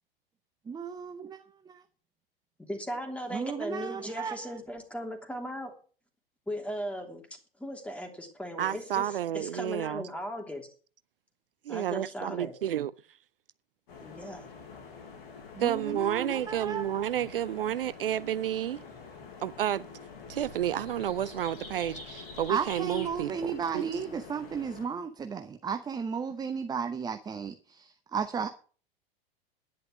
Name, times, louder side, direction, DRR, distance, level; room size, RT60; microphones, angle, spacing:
voice 1, 0.7-1.4 1.6-1.8 3.3-4.5 15.5-16.9 22.5-28.5, right 6 dB, 15° right, 0.9 m, -34 dB
voice 2, 2.6-5.7 6.5-7.2 7.6-10.7 11.7-12.5 14.0-14.4, equal, 5° left, 3.0 m, -37 dB
voice 3, 8.6-10.0 11.7-12.9 15.6-18.8 19.4-19.9 20.3-23.9, right 11 dB, 65° right, 0.5 m, -31 dB
sound 1, 13.9-24.9, left 4 dB, 55° left, 6.2 m, -46 dB
11.0 x 10.5 x 6.3 m
figure-of-eight pair, 90°, 30 cm